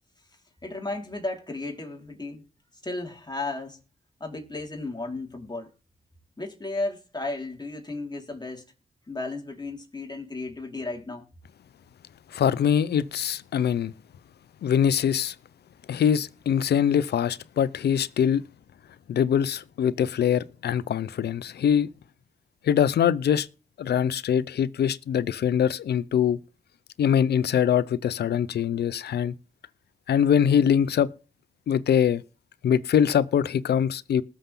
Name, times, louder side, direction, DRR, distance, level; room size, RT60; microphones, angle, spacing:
voice 1, 0.6-2.4 2.8-3.8 4.2-5.7 6.4-8.6 9.1-11.3, left 2 dB, 25° left, 4.8 m, -34 dB
voice 2, 12.3-13.9 14.6-15.3 15.9-18.4 19.1-21.9 22.7-23.5 23.8-26.4 27.0-29.3 30.1-31.1 31.7-32.2 32.6-34.2, left 8 dB, 75° left, 0.7 m, -23 dB
19.5 x 7.1 x 3.9 m
supercardioid pair, 45°, 17 cm